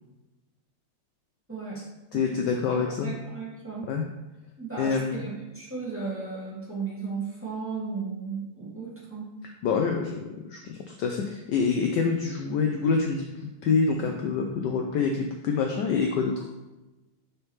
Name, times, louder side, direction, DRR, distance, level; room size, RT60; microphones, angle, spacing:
voice 1, 1.5-1.8 2.1-2.4 2.7-3.9 4.6-9.3, right 4 dB, 5° right, -7 dB, 1.7 m, -35 dB
voice 2, 2.1-3.1 3.9-4.0 4.7-5.2 9.4-10.2 10.5-16.3, left 5 dB, 75° left, 3 dB, 1.0 m, -26 dB
6.5 x 5.8 x 3.1 m, 1.0 s
omnidirectional pair, 2.4 m